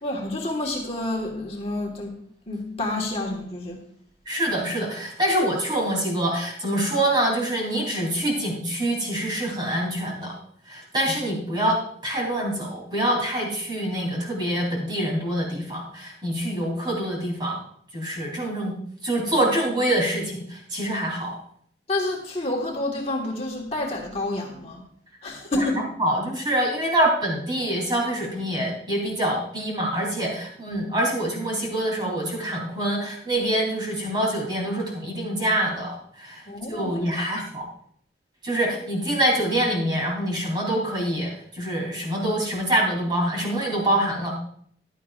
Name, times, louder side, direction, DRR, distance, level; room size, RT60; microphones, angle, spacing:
voice 1, 0.0-2.1 2.5-3.8 21.9-24.8 25.2-25.8 30.7-30.9 36.5-37.3, left 2 dB, 35° left, 0 dB, 1.6 m, -29 dB
voice 2, 4.3-10.3 10.7-17.6 17.9-18.7 19.0-21.3 25.6-25.7 26.0-36.4 36.7-37.6 38.4-44.3, right 1 dB, 25° right, -2 dB, 3.3 m, -25 dB
15.0 x 11.0 x 2.5 m, 0.64 s
head